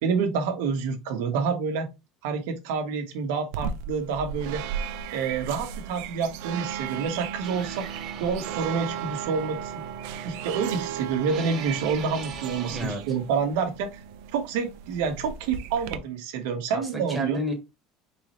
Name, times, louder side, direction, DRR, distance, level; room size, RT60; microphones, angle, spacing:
voice 1, 0.0-1.9 2.2-4.6 5.1-7.9 8.2-9.8 10.2-14.0 14.3-17.4, right 5 dB, 85° right, 1.1 m, -28 dB
sound 1, 3.5-16.0, right 8 dB, 65° right, 0.4 m, -36 dB
sound 2, 7.4-12.9, right 6 dB, 30° right, 0.7 m, -41 dB
voice 2, 12.7-13.0 16.7-17.6, right 1 dB, 5° right, 1.0 m, -30 dB
4.2 x 3.7 x 3.0 m
cardioid pair, 180°, 0 cm